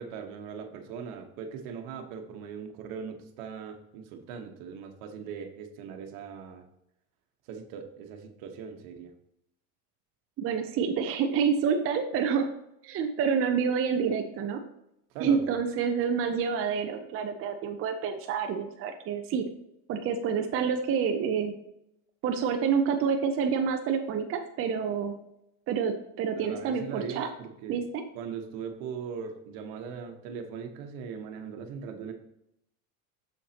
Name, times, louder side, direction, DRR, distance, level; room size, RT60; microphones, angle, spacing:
voice 1, 0.0-6.6 7.5-9.1 15.1-15.5 26.4-27.8 28.1-32.1, right 6 dB, 70° right, 5 dB, 1.2 m, -40 dB
voice 2, 10.4-12.5 12.8-14.6 15.2-19.5 19.9-21.6 22.2-25.2 25.7-27.3 27.7-28.0, right 6 dB, 30° right, 5 dB, 0.6 m, -28 dB
7.2 x 6.5 x 2.9 m, 0.81 s
supercardioid pair, 130°, 43 cm